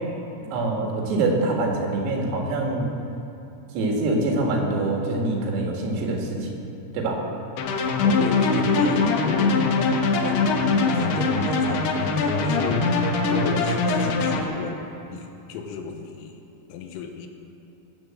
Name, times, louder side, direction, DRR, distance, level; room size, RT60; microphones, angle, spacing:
voice 1, 0.5-2.9 3.7-6.6 6.9-7.2, right 2 dB, 85° right, 0 dB, 4.6 m, -24 dB
sound 1, 7.6-14.4, left 3 dB, 70° left, 2.5 m, -22 dB
voice 2, 8.0-9.6 10.2-12.9 13.3-16.4 16.7-17.3, left 6 dB, 90° left, 4 dB, 3.6 m, -34 dB
19.0 x 7.0 x 7.6 m, 2.9 s
omnidirectional pair, 6.0 m